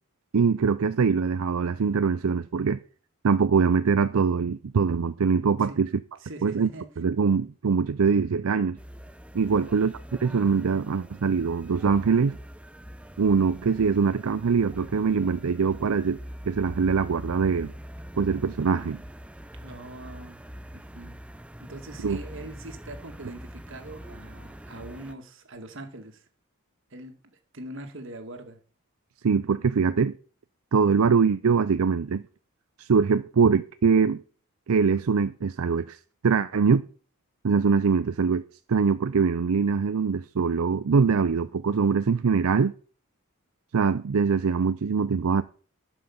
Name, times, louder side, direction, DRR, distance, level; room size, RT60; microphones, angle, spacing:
voice 1, 0.3-2.8 3.2-5.9 6.4-6.7 7.0-8.8 9.3-9.9 10.2-12.4 13.2-16.2 16.4-17.7 18.1-19.0 22.0-22.2 29.2-30.2 30.7-32.2 32.8-34.2 34.7-36.9 37.4-38.4 38.7-42.7 43.7-45.4, right 5 dB, 80° right, 0.5 m, -23 dB
voice 2, 6.2-6.9 9.5-9.7 19.6-20.4 20.7-21.2 21.6-26.3 26.9-28.6, right 1 dB, 60° right, 2.0 m, -42 dB
sound 1, 8.8-25.1, equal, 5° right, 0.5 m, -43 dB
11.5 x 5.9 x 7.1 m
head